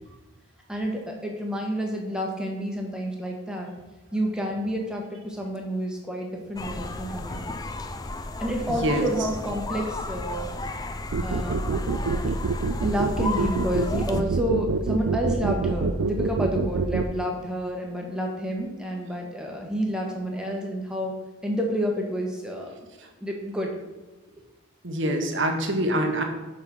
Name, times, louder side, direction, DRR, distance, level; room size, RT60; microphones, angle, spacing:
voice 1, 0.7-3.7 4.1-7.5 8.4-10.5 11.2-11.6 12.8-21.1 21.4-22.7 23.2-23.7, equal, 5° right, 0 dB, 1.1 m, -29 dB
sound 1, 6.6-14.2, left 2 dB, 20° left, 0.3 m, -34 dB
sound 2, 11.1-17.0, right 4 dB, 90° right, 0.5 m, -25 dB
voice 2, 24.8-26.2, right 1 dB, 60° right, 4 dB, 1.1 m, -24 dB
5.6 x 5.4 x 6.2 m, 1.2 s
head